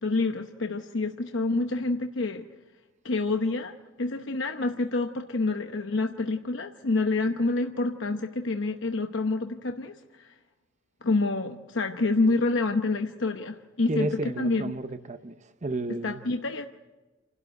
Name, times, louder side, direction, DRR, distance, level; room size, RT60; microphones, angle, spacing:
voice 1, 0.0-2.5 3.0-10.3 11.0-14.7 16.0-16.7, left 3 dB, 65° left, 0.9 m, -28 dB
voice 2, 13.9-15.3 15.6-16.2, right 2 dB, 35° right, 0.8 m, -31 dB
29.0 x 12.5 x 9.2 m
head